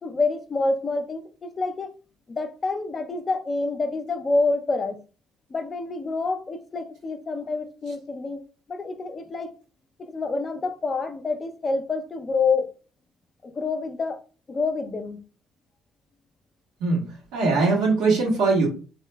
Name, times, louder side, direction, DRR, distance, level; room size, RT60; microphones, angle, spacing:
voice 1, 0.0-1.9 2.3-5.0 5.5-8.4 8.7-9.5 10.0-12.7 13.4-14.2 14.5-15.2, left 3 dB, 35° left, 0.5 m, -27 dB
voice 2, 17.3-18.7, right 3 dB, 85° right, 1.4 m, -21 dB
3.0 x 2.8 x 2.2 m
supercardioid pair, 80°, 0 cm